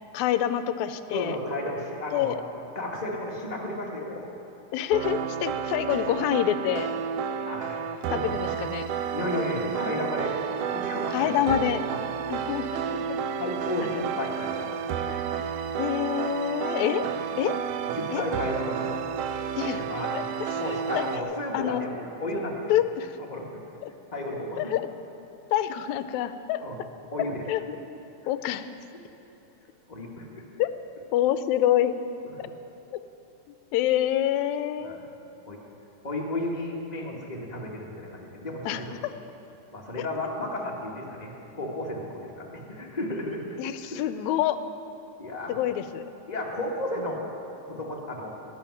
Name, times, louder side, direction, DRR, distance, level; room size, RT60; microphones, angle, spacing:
voice 1, 0.1-1.4 2.1-2.4 4.7-6.9 8.1-8.9 11.1-11.8 12.3-13.2 15.1-15.2 15.8-17.1 17.4-17.5 18.1-18.3 19.6-19.9 20.1-21.1 21.5-21.8 22.7-23.2 23.8-23.9 24.6-24.9 25.5-26.6 27.2-27.6 28.3-28.7 30.6-30.7 31.1-32.0 32.4-32.5 33.7-35.0 38.7-39.1 43.6-44.6 45.5-46.0 47.0-47.1, left 11 dB, 80° left, 11 dB, 1.9 m, -27 dB
voice 2, 1.1-2.4 2.7-4.3 7.5-7.8 8.1-8.4 9.1-10.3 10.7-11.4 11.9-12.0 13.4-14.8 17.0-17.1 17.9-18.8 19.7-20.1 20.5-22.7 23.2-23.7 24.1-24.7 26.6-26.8 27.1-27.8 29.9-30.4 34.8-35.0 35.5-35.6 36.0-39.0 39.7-43.6 43.9-44.0 45.2-45.5 46.3-47.2 47.7-48.4, left 1 dB, 20° left, -2 dB, 1.3 m, -33 dB
sound 1, 4.9-21.2, right 7 dB, 85° right, 1.3 m, -31 dB
19.5 x 7.1 x 9.8 m, 2.9 s
omnidirectional pair, 3.4 m